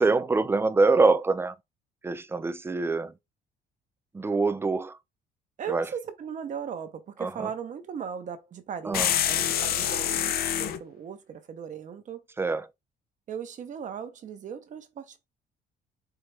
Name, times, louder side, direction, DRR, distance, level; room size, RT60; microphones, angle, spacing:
voice 1, 0.0-1.5 2.0-3.1 4.1-5.0 5.7-5.9 7.2-7.5 8.8-9.1 12.4-12.7, right 3 dB, 15° right, 0.3 m, -24 dB
voice 2, 5.6-12.2 13.3-15.3, right 7 dB, 50° right, 0.9 m, -38 dB
sound 1, 8.9-10.8, left 10 dB, 65° left, 0.6 m, -26 dB
4.6 x 2.4 x 3.4 m
cardioid pair, 110°, 17 cm